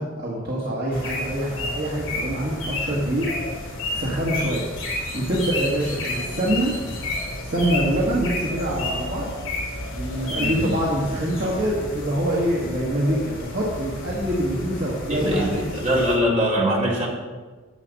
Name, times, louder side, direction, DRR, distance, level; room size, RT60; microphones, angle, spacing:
voice 1, 0.0-3.3 3.9-4.6 5.1-6.7 7.4-9.3 9.9-15.6, right 1 dB, 50° right, -5 dB, 1.7 m, -25 dB
sound 1, 0.9-16.2, left 2 dB, 60° left, 3.0 m, -31 dB
voice 2, 10.3-10.7 15.1-17.1, equal, 30° right, -4 dB, 2.5 m, -22 dB
10.0 x 7.6 x 5.3 m, 1.4 s
head